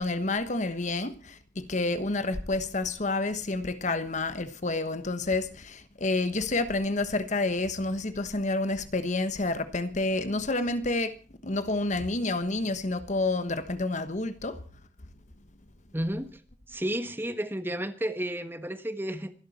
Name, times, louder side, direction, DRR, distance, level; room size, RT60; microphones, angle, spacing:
voice 1, 0.0-14.6, left 2 dB, 40° left, 1.2 m, -29 dB
voice 2, 15.9-16.4 16.7-19.3, right 1 dB, 10° right, 1.4 m, -32 dB
25.5 x 12.0 x 4.3 m
head